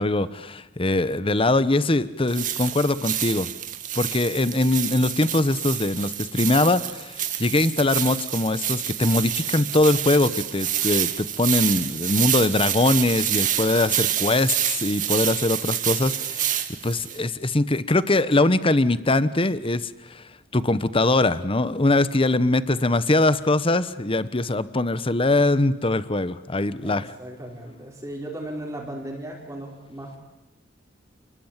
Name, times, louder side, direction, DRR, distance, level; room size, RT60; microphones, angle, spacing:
voice 1, 0.0-3.5 3.9-20.2 20.5-27.0, left 2 dB, 30° left, 15 dB, 1.0 m, -22 dB
sound 1, 2.3-17.2, right 11 dB, 45° right, 2.1 m, -28 dB
voice 2, 26.8-30.2, right 1 dB, 15° right, -3 dB, 4.9 m, -36 dB
30.0 x 21.0 x 9.0 m, 0.89 s
head